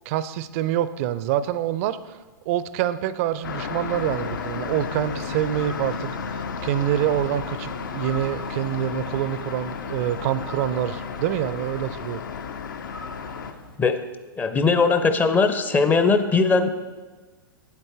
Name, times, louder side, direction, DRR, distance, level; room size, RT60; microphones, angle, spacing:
voice 1, 0.1-2.2 2.5-6.1 6.6-12.2, right 11 dB, 40° right, 15 dB, 0.4 m, -26 dB
sound 1, 3.4-13.5, left 6 dB, 60° left, 0.6 m, -33 dB
sound 2, 3.9-13.8, left 2 dB, 80° left, 1.2 m, -41 dB
voice 2, 14.4-16.7, left 4 dB, 15° left, 9 dB, 0.5 m, -19 dB
8.3 x 8.1 x 3.4 m, 1.3 s
figure-of-eight pair, 105°, 11 cm